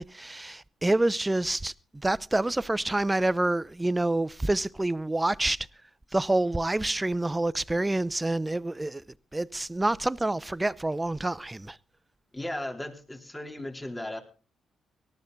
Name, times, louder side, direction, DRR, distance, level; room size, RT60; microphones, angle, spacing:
voice 1, 0.0-1.7 2.0-5.6 6.1-9.0 9.3-11.8, right 2 dB, 15° right, 0.7 m, -27 dB
voice 2, 12.3-14.2, left 1 dB, 15° left, 3.5 m, -36 dB
18.5 x 13.0 x 4.0 m
supercardioid pair, 60°, 0 cm